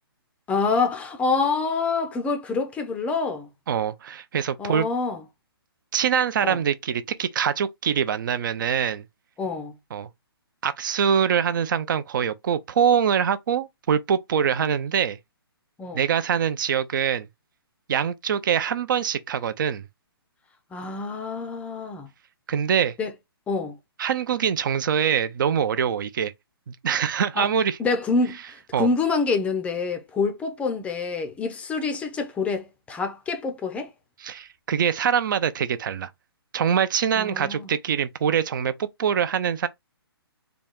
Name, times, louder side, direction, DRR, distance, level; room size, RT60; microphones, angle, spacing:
voice 1, 0.5-3.5 4.6-5.2 6.4-6.6 9.4-9.7 15.8-16.0 20.7-22.1 23.0-23.1 23.5-23.8 27.4-27.5 27.8-33.9 37.2-37.7, left 4 dB, 10° left, 0.5 m, -26 dB
voice 2, 3.7-4.9 5.9-9.1 9.9-10.1 10.6-15.2 15.9-17.3 17.9-19.8 22.5-22.9 24.0-26.3 26.7-27.8 28.7-28.9 34.2-36.1 36.5-39.7, right 8 dB, 50° right, 0.6 m, -24 dB
4.0 x 2.3 x 3.5 m
hypercardioid pair, 140°, 13 cm